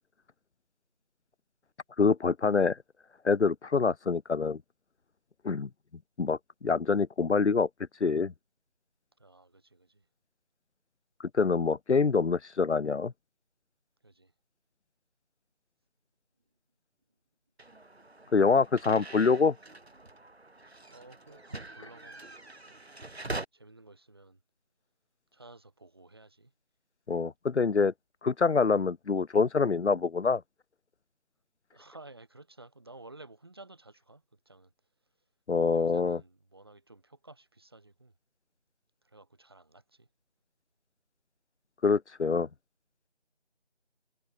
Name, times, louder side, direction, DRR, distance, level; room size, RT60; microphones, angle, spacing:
voice 1, 2.0-2.8 3.2-4.6 5.4-5.7 6.2-7.7 8.0-8.3 11.3-13.1 18.3-19.5 27.1-27.9 28.2-30.4 35.5-36.2 41.8-42.5, left 4 dB, 80° left, 0.8 m, -25 dB
voice 2, 9.2-10.1 14.0-14.3 18.2-18.4 20.9-22.4 22.7-22.8 23.5-24.4 25.3-26.5 31.7-34.7 35.7-38.1 39.0-40.1, right 2 dB, 20° right, 7.6 m, -53 dB
sound 1, 17.6-23.4, right 2 dB, 65° right, 2.7 m, -43 dB
figure-of-eight pair, 180°, 34 cm